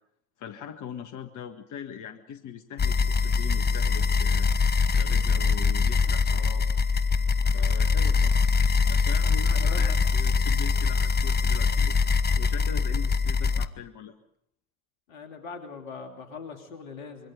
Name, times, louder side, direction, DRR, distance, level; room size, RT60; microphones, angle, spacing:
voice 1, 0.4-4.5 4.9-6.6 7.5-8.4 8.9-12.0 12.4-14.1, left 8 dB, 45° left, 7 dB, 1.7 m, -41 dB
sound 1, 2.8-13.7, left 5 dB, 25° left, 1.1 m, -23 dB
voice 2, 9.5-10.0 15.1-17.3, left 5 dB, 80° left, 5 dB, 3.1 m, -41 dB
26.5 x 23.0 x 5.2 m, 0.75 s
hypercardioid pair, 70°, 41 cm